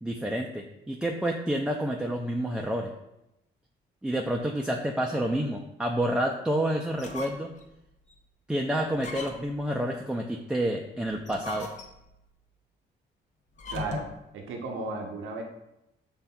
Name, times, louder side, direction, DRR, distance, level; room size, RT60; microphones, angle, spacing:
voice 1, 0.0-2.9 4.0-7.5 8.5-11.7, right 1 dB, 5° right, 0 dB, 0.3 m, -29 dB
sound 1, 6.9-7.6 8.1-8.2 8.9-9.6 11.1-12.1 13.5-14.2, left 3 dB, 40° left, 0.7 m, -39 dB
voice 2, 13.7-14.1 14.3-15.4, right 3 dB, 80° right, 2 dB, 0.6 m, -34 dB
5.5 x 3.4 x 2.2 m, 0.88 s
cardioid pair, 90°, 20 cm